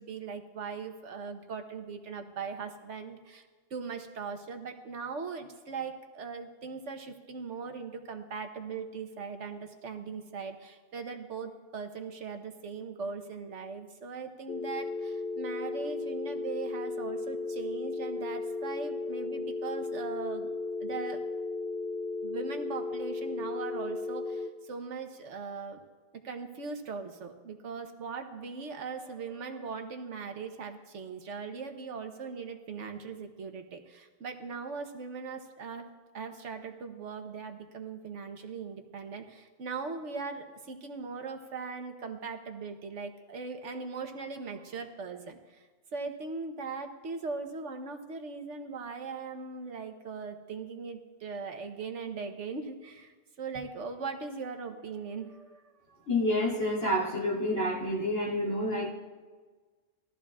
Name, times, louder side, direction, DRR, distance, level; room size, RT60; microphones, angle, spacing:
voice 1, 0.0-3.4 3.7-20.5 20.8-21.2 22.2-25.8 26.2-35.9 36.1-45.6 45.9-55.6 55.9-56.0, right 5 dB, 70° right, 5 dB, 1.3 m, -39 dB
sound 1, 14.5-24.5, left 3 dB, 55° left, 0.7 m, -35 dB
voice 2, 56.1-58.9, left 1 dB, 90° left, -4 dB, 3.1 m, -28 dB
20.0 x 14.0 x 2.4 m, 1.4 s
omnidirectional pair, 1.3 m